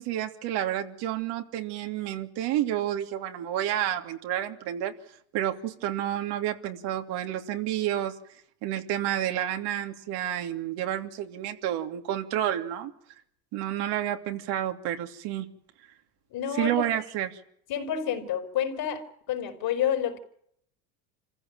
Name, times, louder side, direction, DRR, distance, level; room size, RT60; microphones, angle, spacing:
voice 1, 0.0-4.9 5.3-8.1 8.6-12.9 13.5-15.5 16.6-17.4, right 12 dB, 65° right, 3.0 m, -30 dB
voice 2, 16.3-16.8 17.7-20.2, left 9 dB, 55° left, 5.2 m, -29 dB
26.5 x 15.5 x 9.0 m
supercardioid pair, 95°, 44 cm